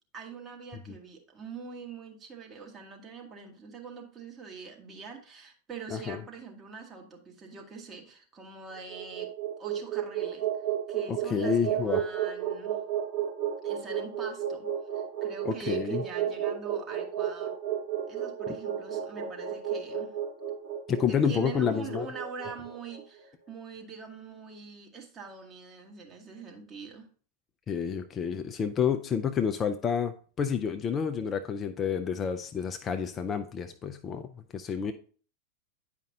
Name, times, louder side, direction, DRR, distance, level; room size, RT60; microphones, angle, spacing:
voice 1, 0.1-9.3 9.6-10.5 10.9-12.8 13.6-14.7 14.9-17.5 18.1-20.2 21.1-27.1, right 5 dB, 20° right, 1 dB, 1.4 m, -44 dB
voice 2, 5.9-6.2 11.1-12.0 15.4-16.0 18.5-18.6 20.9-22.1 27.7-34.9, left 7 dB, 25° left, 8 dB, 0.4 m, -29 dB
sound 1, 8.8-23.0, right 10 dB, 50° right, 2.1 m, -32 dB
9.3 x 5.1 x 2.7 m, 0.41 s
figure-of-eight pair, 90°, 0 cm